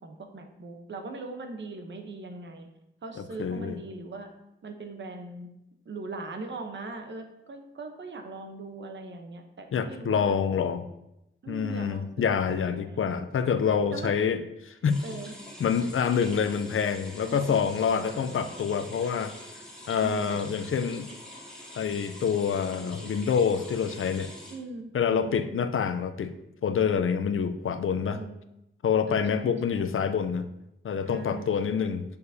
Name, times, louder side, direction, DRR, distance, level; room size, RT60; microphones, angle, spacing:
voice 1, 0.0-2.7 3.0-4.3 4.6-5.5 5.8-10.3 11.4-13.1 13.9-14.2 15.0-15.3 17.2-18.4 20.0-20.4 24.5-25.7 28.1-28.4 29.1-29.9 31.0-31.9, right 3 dB, 60° right, 4 dB, 0.9 m, -40 dB
voice 2, 3.2-3.8 9.7-10.9 11.5-14.4 14.8-15.0 15.6-19.3 19.9-21.1 21.8-24.3 24.9-26.3 26.6-28.2 28.8-30.5 30.8-32.0, left 7 dB, 75° left, 10 dB, 0.5 m, -27 dB
sound 1, 14.9-24.5, left 1 dB, 5° left, 1.7 m, -45 dB
6.7 x 6.5 x 2.7 m, 0.86 s
wide cardioid pair, 120°, 21 cm